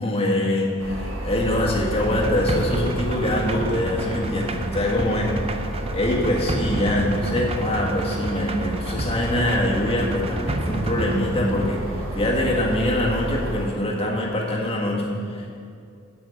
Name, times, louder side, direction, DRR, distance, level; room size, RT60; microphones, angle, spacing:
voice 1, 0.0-5.3 5.9-11.8 12.1-15.6, left 1 dB, 30° left, -3 dB, 1.7 m, -24 dB
sound 1, 0.8-13.7, equal, 85° right, 1.4 m, -32 dB
sound 2, 2.0-12.2, right 2 dB, 30° right, 0.5 m, -31 dB
8.6 x 6.1 x 8.2 m, 2.4 s
head